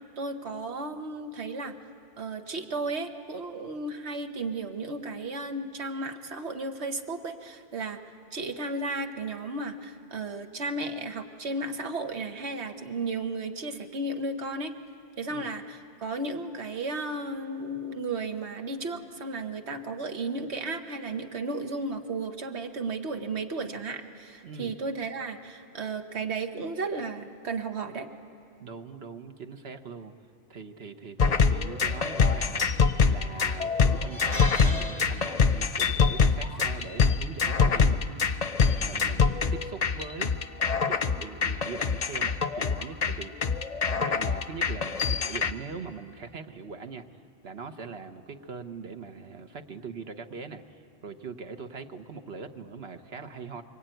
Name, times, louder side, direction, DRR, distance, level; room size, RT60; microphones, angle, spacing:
voice 1, 0.2-1.8 2.2-8.0 8.3-14.7 15.2-28.1, right 3 dB, 85° right, 6 dB, 1.6 m, -34 dB
voice 2, 28.6-30.1 30.5-40.4 40.8-43.6 43.9-53.6, right 5 dB, 70° right, 7 dB, 1.4 m, -41 dB
sound 1, 31.2-45.5, left 5 dB, 40° left, 0.7 m, -25 dB
sound 2, 32.7-33.1 33.4-33.5 33.9-35.8 36.0-36.3 37.5-37.8, equal, 45° right, 2.3 m, -39 dB
25.0 x 24.0 x 9.2 m, 2.6 s
omnidirectional pair, 1.1 m